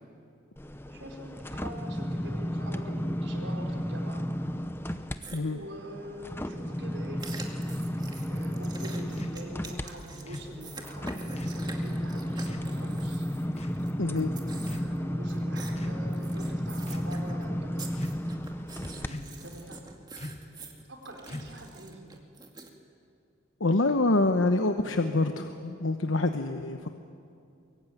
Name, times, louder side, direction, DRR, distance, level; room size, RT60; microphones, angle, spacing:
sound 1, 0.6-5.2 5.6-19.1 19.6-19.7, equal, 10° left, 0.8 m, -33 dB
voice 1, 0.8-4.2 5.5-7.2 8.3-13.3 14.7-17.9 18.8-19.8 20.9-22.2, right 1 dB, 80° right, 2 dB, 4.6 m, -45 dB
sound 2, 5.2-5.4 7.2-13.9 14.2-15.0 15.3-15.7 16.1-17.4 17.8-22.7, right 3 dB, 20° right, 2.2 m, -45 dB
sound 3, 9.2-9.4 10.3-10.5 11.4-11.7 12.5-12.7 13.6-13.8 14.6-15.2 15.7-16.0 16.8-17.1 18.0-18.4 19.1-19.5 20.2-20.5 21.3-21.7, left 1 dB, 35° left, 1.5 m, -42 dB
voice 2, 14.0-14.3 23.6-26.9, left 2 dB, 90° left, 6 dB, 1.1 m, -26 dB
24.0 x 23.0 x 9.5 m, 2.5 s
head